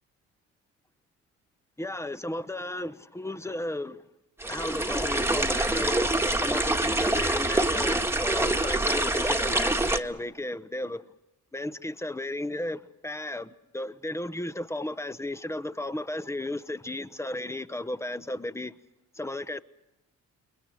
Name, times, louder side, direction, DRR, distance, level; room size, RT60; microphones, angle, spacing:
voice 1, 1.8-4.0 4.5-11.0 11.5-18.7 19.1-19.6, left 1 dB, 10° left, 1.1 m, -34 dB
sound 1, 4.4-10.0, right 1 dB, 10° right, 1.7 m, -25 dB
29.0 x 22.0 x 6.6 m
cardioid pair, 90°, 30 cm